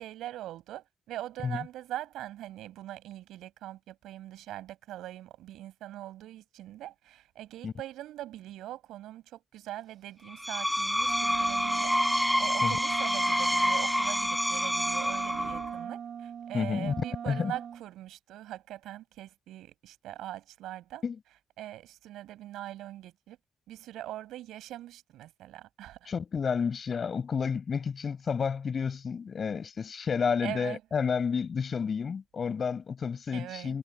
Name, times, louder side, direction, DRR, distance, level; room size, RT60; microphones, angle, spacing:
voice 1, 0.0-21.0 21.6-23.4 23.7-26.1 30.4-30.8 33.3-33.8, right 14 dB, 85° right, 7.1 m, -42 dB
Screech, 10.3-15.8, equal, 5° left, 1.2 m, -28 dB
Wind instrument woodwind instrument, 11.0-17.8, right 8 dB, 60° right, 4.4 m, -39 dB
voice 2, 16.5-16.9 17.3-17.5 21.0-21.2 26.1-33.8, left 6 dB, 45° left, 7.5 m, -30 dB
cardioid pair, 80°, 0 cm